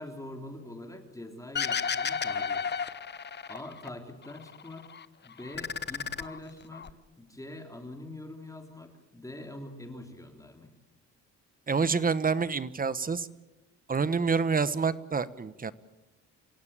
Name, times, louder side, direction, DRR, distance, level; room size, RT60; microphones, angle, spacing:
voice 1, 0.0-2.7 3.5-4.8 5.2-6.9 7.2-10.7, left 1 dB, 10° left, 4 dB, 3.4 m, -44 dB
sound 1, 1.6-3.9 4.2-5.1 5.4-6.9, left 6 dB, 35° left, 0.9 m, -33 dB
voice 2, 11.7-13.3 13.9-15.7, right 5 dB, 30° right, 16 dB, 1.1 m, -27 dB
27.0 x 17.0 x 8.8 m, 1.0 s
cardioid pair, 90°, 30 cm